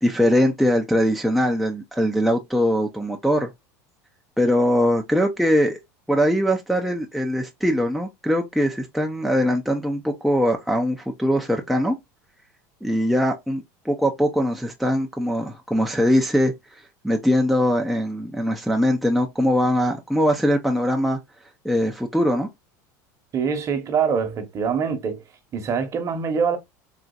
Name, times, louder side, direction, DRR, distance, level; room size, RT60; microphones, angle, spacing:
voice 1, 0.0-3.5 4.4-5.8 6.1-12.0 12.8-21.2 21.6-22.5, equal, ahead, 0.5 m, -21 dB
voice 2, 23.3-25.2 25.5-26.6, right 6 dB, 35° right, 1.0 m, -24 dB
4.0 x 2.4 x 2.3 m
supercardioid pair, 115°, 9 cm